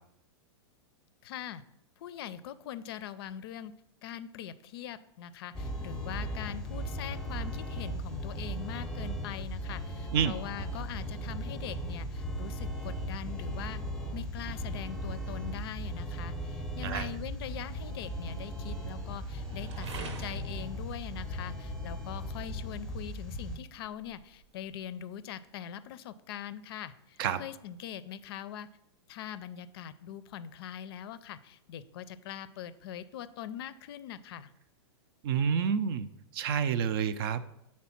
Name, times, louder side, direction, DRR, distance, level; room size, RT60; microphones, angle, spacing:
voice 1, 1.2-1.6 2.0-3.7 4.0-13.8 14.1-28.7 29.1-34.5, left 10 dB, 55° left, 15 dB, 0.4 m, -42 dB
sound 1, 5.5-23.6, equal, 5° left, 0.6 m, -37 dB
sound 2, 11.8-25.5, right 4 dB, 80° right, 1.0 m, -54 dB
voice 2, 35.2-37.4, right 7 dB, 55° right, 13 dB, 0.5 m, -29 dB
6.1 x 4.3 x 5.8 m, 0.81 s
hypercardioid pair, 150°, 15 cm